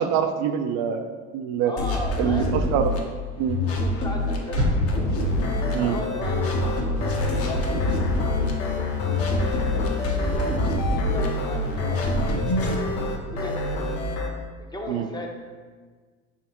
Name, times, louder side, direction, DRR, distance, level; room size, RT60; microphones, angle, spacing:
voice 1, 0.0-1.7 2.2-3.0 3.4-3.6 5.7-6.0 14.9-15.1, right 8 dB, 65° right, 8 dB, 0.5 m, -25 dB
voice 2, 1.7-2.5 3.7-4.9 5.8-8.4 8.6-8.8 9.2-12.0 12.6-13.9 14.6-15.3, left 1 dB, 10° left, 0 dB, 0.6 m, -37 dB
sound 1, 1.8-3.0 3.5-5.7 6.2-8.5 9.0-11.3 11.8-12.8, left 1 dB, 45° left, 0.8 m, -26 dB
sound 2, 4.6-6.5 6.9-7.0, equal, 85° right, 1.1 m, -28 dB
sound 3, 5.2-14.3, left 2 dB, 85° left, 0.7 m, -29 dB
5.1 x 3.5 x 2.9 m, 1.5 s
supercardioid pair, 95°, 34 cm